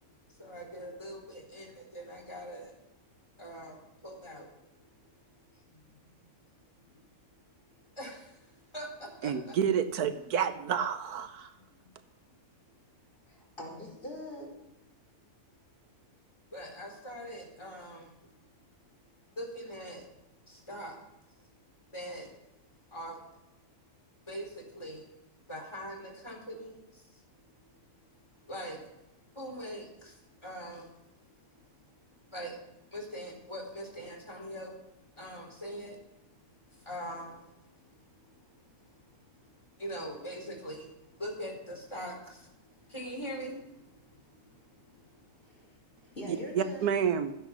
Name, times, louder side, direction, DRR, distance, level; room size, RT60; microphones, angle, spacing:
voice 1, 0.0-2.7 3.4-4.5 5.5-5.8 8.0-9.5 11.8-11.9 14.4-14.7 16.5-18.1 19.3-20.1 20.5-21.0 21.9-22.3 22.9-23.2 24.3-25.1 25.5-27.8 28.4-28.9 29.3-36.1 36.5-46.2, equal, 20° left, 0 dB, 4.2 m, -44 dB
voice 2, 9.2-11.5 46.3-47.3, right 8 dB, 85° right, 10 dB, 1.5 m, -29 dB
voice 3, 13.3-14.6 45.4-45.8 46.0-46.8, equal, 35° left, -2 dB, 4.6 m, -43 dB
14.0 x 10.0 x 6.1 m, 0.91 s
omnidirectional pair, 1.6 m